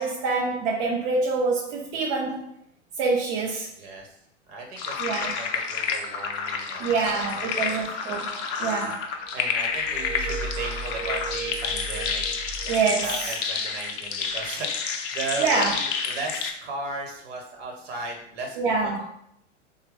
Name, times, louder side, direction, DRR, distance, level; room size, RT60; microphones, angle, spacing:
voice 1, 0.0-2.5 3.0-3.7 5.0-5.4 6.8-9.1 12.7-13.4 15.4-15.8 18.6-19.1, right 4 dB, 40° right, -2 dB, 0.5 m, -26 dB
voice 2, 3.8-4.1 4.5-7.9 9.3-19.1, right 3 dB, 55° right, 1 dB, 1.1 m, -36 dB
sound 1, 4.8-16.5, left 6 dB, 35° left, 0.4 m, -30 dB
Glass, 9.7-13.3 14.3-14.5, right 3 dB, 85° right, 0.5 m, -35 dB
3.2 x 2.2 x 3.5 m, 0.73 s
figure-of-eight pair, 95°, 37 cm